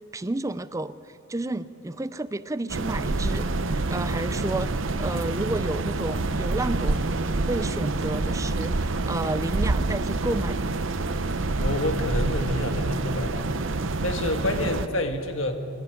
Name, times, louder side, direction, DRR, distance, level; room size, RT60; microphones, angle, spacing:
voice 1, 0.1-10.7, right 2 dB, 15° right, 14 dB, 0.4 m, -31 dB
sound 1, 2.7-14.9, right 2 dB, 60° right, 0.8 m, -27 dB
voice 2, 11.6-13.4 14.0-15.6, left 1 dB, 65° left, 6 dB, 1.8 m, -28 dB
24.0 x 11.5 x 10.0 m, 2.6 s
head